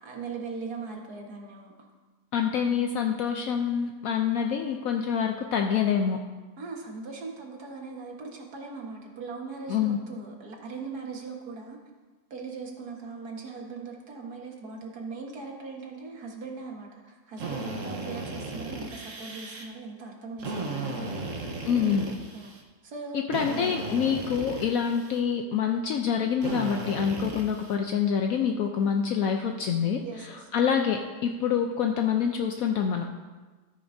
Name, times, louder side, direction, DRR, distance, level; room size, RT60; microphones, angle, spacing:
voice 1, 0.0-1.9 6.6-11.8 12.3-21.3 22.3-22.5 22.8-23.4 30.0-30.5, right 4 dB, 70° right, 1 dB, 2.0 m, -40 dB
voice 2, 2.3-6.2 9.7-10.0 21.7-22.0 23.1-33.1, left 7 dB, 70° left, 4 dB, 1.0 m, -26 dB
Drill, 17.4-19.6 20.4-22.6 23.3-25.2 26.4-27.8, right 2 dB, 55° right, 1.4 m, -36 dB
13.5 x 9.6 x 2.7 m, 1.3 s
omnidirectional pair, 1.7 m